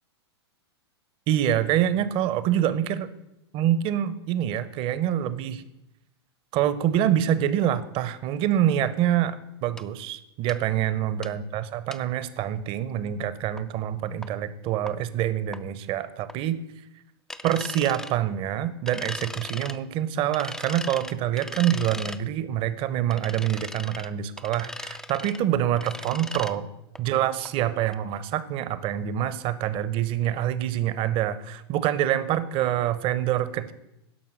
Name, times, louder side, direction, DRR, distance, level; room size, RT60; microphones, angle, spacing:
voice 1, 1.3-3.1 3.5-5.6 6.5-16.6 17.4-26.7 27.0-33.7, right 11 dB, 40° right, 15 dB, 0.8 m, -26 dB
sound 1, 9.8-9.9 10.5-10.6 11.2-11.3 11.9-12.0 13.6-13.7 14.2-14.3 14.9-15.0 15.5-15.6 16.3-16.4 17.3-18.1 18.9-19.8 20.3-22.2 23.1-24.1 24.4-25.4 25.8-26.5 27.0-27.1 27.5-27.6 27.9-28.0, left 1 dB, 5° left, 0.4 m, -38 dB
11.5 x 5.6 x 6.5 m, 0.86 s
hypercardioid pair, 105°, 14 cm